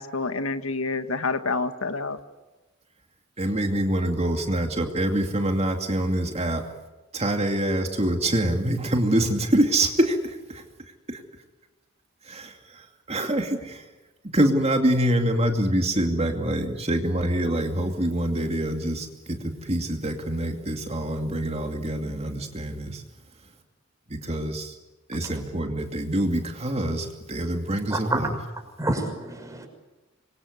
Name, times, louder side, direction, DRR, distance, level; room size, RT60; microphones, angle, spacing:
voice 1, 0.0-2.2, left 3 dB, 80° left, 9 dB, 1.7 m, -28 dB
voice 2, 3.4-6.6 7.1-10.6 11.1-11.2 12.3-12.8 13.1-13.8 14.3-23.0 24.1-24.7 25.1-28.4, right 1 dB, 30° right, 4 dB, 2.6 m, -25 dB
voice 3, 27.9-28.2 28.8-29.7, right 2 dB, 15° right, 4 dB, 6.0 m, -28 dB
27.0 x 23.5 x 8.2 m, 1.1 s
head